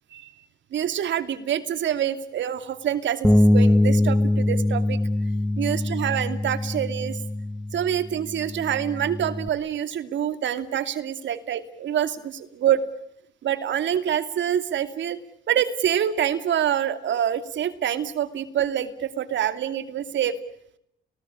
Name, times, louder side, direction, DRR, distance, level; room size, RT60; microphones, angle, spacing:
voice 1, 0.7-5.0 5.6-7.2 7.7-12.8 13.4-15.2 15.5-20.4, right 10 dB, 70° right, 11 dB, 2.7 m, -26 dB
Bass guitar, 3.2-9.5, left 1 dB, 5° left, 1.6 m, -23 dB
29.5 x 20.0 x 8.7 m, 0.77 s
cardioid pair, 90°, 20 cm